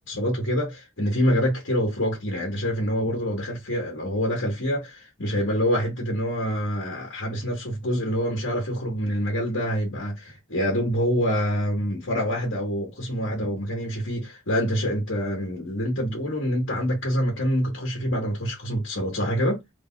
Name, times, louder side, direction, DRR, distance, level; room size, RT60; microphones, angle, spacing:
voice 1, 0.1-19.6, equal, 75° left, 1.3 m, -26 dB
3.4 x 2.3 x 3.6 m
head